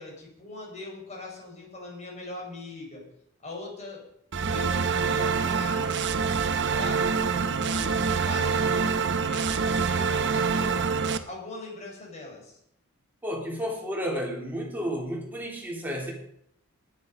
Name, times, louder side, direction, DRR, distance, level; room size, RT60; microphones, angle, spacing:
voice 1, 0.0-3.0 3.4-4.0 4.4-6.3 6.7-10.9 11.3-12.6, left 2 dB, 30° left, 0 dB, 5.4 m, -41 dB
sound 1, 4.3-11.2, right 5 dB, 55° right, 0.9 m, -26 dB
voice 2, 13.2-16.1, equal, 10° right, -2 dB, 3.8 m, -32 dB
20.0 x 8.5 x 5.4 m, 0.72 s
head